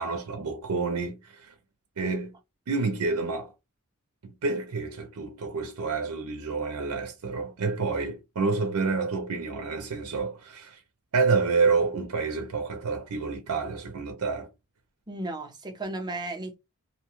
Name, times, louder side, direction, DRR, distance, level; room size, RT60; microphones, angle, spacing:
voice 1, 0.0-1.5 2.0-2.4 2.7-3.5 4.2-10.8 11.1-14.5, right 4 dB, 75° right, 0.6 m, -28 dB
voice 2, 15.1-16.6, right 2 dB, 20° right, 0.6 m, -34 dB
2.8 x 2.1 x 3.0 m
head